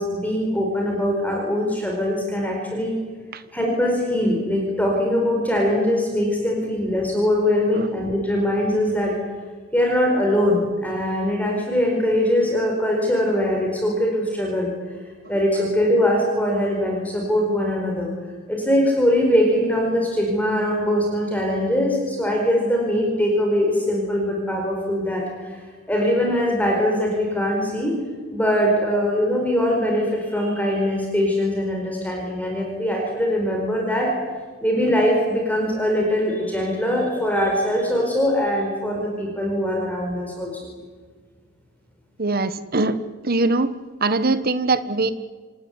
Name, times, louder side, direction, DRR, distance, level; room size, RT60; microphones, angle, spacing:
voice 1, 0.0-2.9 3.5-9.1 9.7-14.7 15.3-18.1 18.5-27.9 28.3-34.1 34.6-40.6, equal, 10° left, 0 dB, 4.7 m, -22 dB
voice 2, 42.2-43.0 43.2-43.7 44.0-45.1, right 3 dB, 50° right, 12 dB, 1.3 m, -21 dB
27.5 x 18.5 x 9.6 m, 1.5 s
head